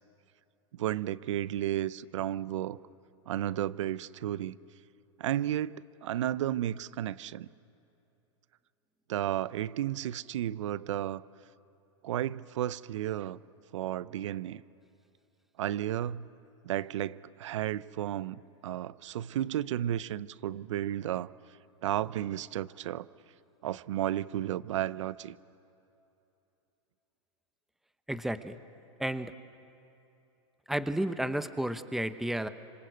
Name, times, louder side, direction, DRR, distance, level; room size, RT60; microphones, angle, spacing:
voice 1, 0.7-2.8 3.3-4.6 5.2-7.5 9.1-11.2 12.0-13.4 13.7-14.6 15.6-16.3 16.6-21.3 21.8-23.1 23.6-25.4, right 12 dB, 75° right, 18 dB, 0.7 m, -33 dB
voice 2, 28.1-28.6 29.0-29.3 30.7-32.5, right 1 dB, ahead, 11 dB, 0.9 m, -32 dB
26.0 x 26.0 x 8.0 m, 2.9 s
hypercardioid pair, 120°, 16 cm